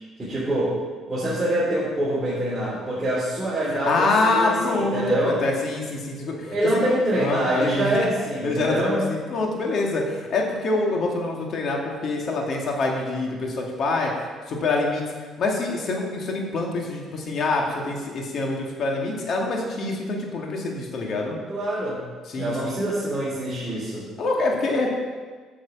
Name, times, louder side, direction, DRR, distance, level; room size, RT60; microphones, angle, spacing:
voice 1, 0.2-0.8 1.1-5.4 6.5-9.1 21.5-22.0 22.3-24.1, right 1 dB, 15° right, -9 dB, 3.3 m, -25 dB
voice 2, 3.7-6.6 7.1-8.1 8.4-14.1 14.5-21.4 22.3-22.8 24.2-24.9, left 3 dB, 50° left, 0 dB, 2.2 m, -25 dB
9.2 x 6.5 x 7.1 m, 1.5 s
cardioid pair, 115°, 0 cm